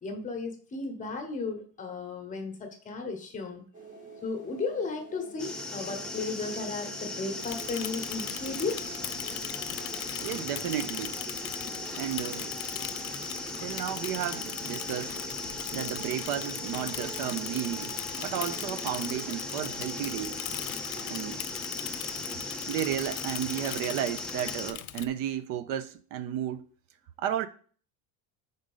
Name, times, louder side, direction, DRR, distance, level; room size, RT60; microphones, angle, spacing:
voice 1, 0.0-3.6 4.2-8.9, left 3 dB, 20° left, 1.0 m, -35 dB
sound 1, 3.7-21.3, right 4 dB, 20° right, 1.1 m, -48 dB
sound 2, 5.4-24.7, left 2 dB, ahead, 0.4 m, -38 dB
Bicycle / Mechanisms, 7.4-25.1, left 15 dB, 75° left, 0.5 m, -40 dB
voice 2, 10.2-11.2 11.9-12.5 13.6-15.1 15.7-20.4 21.1-21.4 22.2-26.6 27.2-27.5, right 10 dB, 60° right, 0.5 m, -33 dB
5.1 x 3.9 x 5.4 m
cardioid pair, 170°, 37 cm